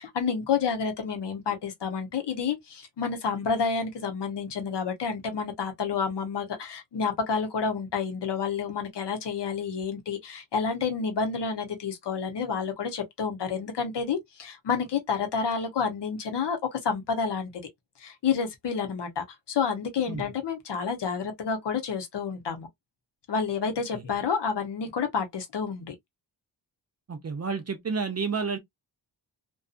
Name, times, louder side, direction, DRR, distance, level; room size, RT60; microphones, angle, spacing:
voice 1, 0.0-17.5 18.0-22.7 23.3-25.9, left 6 dB, 65° left, 0.9 m, -29 dB
voice 2, 27.1-28.6, right 5 dB, 35° right, 0.5 m, -30 dB
2.6 x 2.3 x 2.4 m
wide cardioid pair, 180°, 44 cm